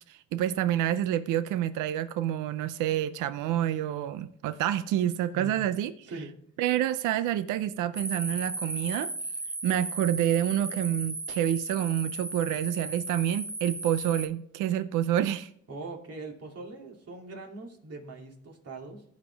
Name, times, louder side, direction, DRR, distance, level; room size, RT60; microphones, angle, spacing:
voice 1, 0.1-6.1 6.6-9.1 9.6-15.5, right 11 dB, 90° right, 0.5 m, -28 dB
sound 1, 8.0-14.3, right 2 dB, 10° right, 0.7 m, -36 dB
voice 2, 15.7-19.0, right 3 dB, 55° right, 2.6 m, -41 dB
15.0 x 5.3 x 3.4 m
cardioid pair, 90°, 30 cm